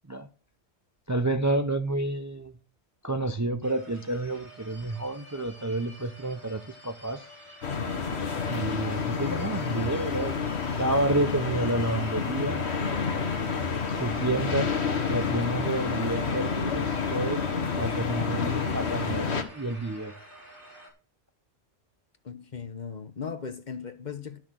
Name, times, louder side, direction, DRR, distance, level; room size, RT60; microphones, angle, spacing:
voice 1, 1.1-2.5 3.0-7.3 8.5-10.4 10.8-12.6 13.9-14.8 15.1-20.1, right 2 dB, 20° right, 0.5 m, -30 dB
sound 1, 3.6-20.9, right 1 dB, 50° right, 5.2 m, -49 dB
sound 2, 7.6-19.4, left 5 dB, 75° left, 1.6 m, -29 dB
voice 2, 22.2-24.4, left 6 dB, 45° left, 1.0 m, -37 dB
12.5 x 6.2 x 6.2 m
omnidirectional pair, 1.1 m